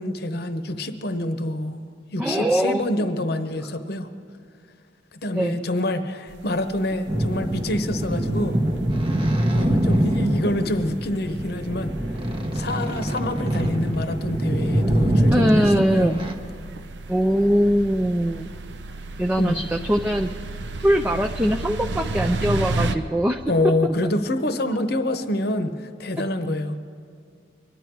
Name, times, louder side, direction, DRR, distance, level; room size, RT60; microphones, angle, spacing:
voice 1, 0.0-1.8 2.1-4.1 5.2-8.6 9.5-11.9 12.5-16.1 19.4-19.6 23.5-26.8, left 1 dB, 55° left, 9 dB, 0.9 m, -26 dB
voice 2, 2.2-2.8 5.3-5.6 15.3-16.2 17.1-18.5 19.2-20.3 20.8-23.7, equal, 10° right, 3 dB, 0.4 m, -21 dB
sound 1, 6.3-22.9, right 2 dB, 65° right, 0.6 m, -35 dB
sound 2, 7.1-16.3, right 1 dB, 30° right, 0.9 m, -24 dB
24.0 x 10.5 x 4.6 m, 2.3 s
head